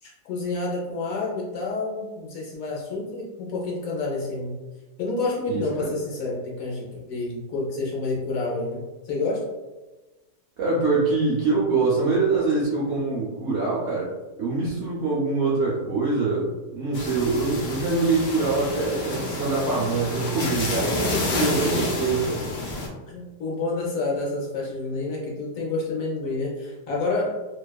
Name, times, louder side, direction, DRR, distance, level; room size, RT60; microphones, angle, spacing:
voice 1, 0.0-4.6 5.0-9.4 21.0-21.4 23.1-27.3, left 3 dB, 65° left, -4 dB, 1.0 m, -29 dB
voice 2, 5.5-5.9 10.6-14.1 14.4-22.4, right 3 dB, 80° right, -6 dB, 0.6 m, -24 dB
sound 1, 16.9-22.9, left 2 dB, 90° left, 0.5 m, -29 dB
2.7 x 2.2 x 2.2 m, 1.1 s
omnidirectional pair, 1.7 m